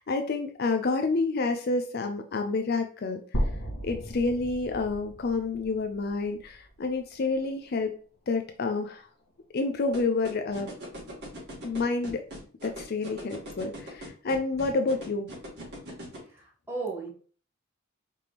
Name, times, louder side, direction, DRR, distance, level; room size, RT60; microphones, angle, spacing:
voice 1, 0.0-3.2 3.8-7.9 8.3-9.1 9.5-10.7 11.6-12.2 12.6-15.3, left 3 dB, 45° left, 6 dB, 0.4 m, -29 dB
sound 1, 3.3-7.3, equal, 70° left, 1.3 m, -35 dB
sound 2, 9.9-16.2, right 1 dB, 50° right, 2.3 m, -40 dB
voice 2, 16.3-17.1, right 3 dB, 10° right, -4 dB, 1.4 m, -35 dB
4.9 x 3.5 x 2.9 m, 0.42 s
head